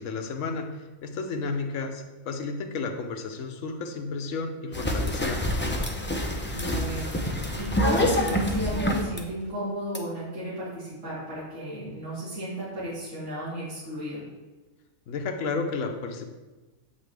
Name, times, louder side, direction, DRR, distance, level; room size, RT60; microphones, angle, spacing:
voice 1, 0.0-5.8 15.1-16.3, left 4 dB, 75° left, 5 dB, 1.1 m, -32 dB
sound 1, 4.7-9.2 9.9-10.0, left 1 dB, 20° left, 0.3 m, -26 dB
voice 2, 6.5-14.3, equal, 65° right, -10 dB, 2.5 m, -34 dB
7.4 x 5.7 x 3.4 m, 1.2 s
omnidirectional pair, 1.3 m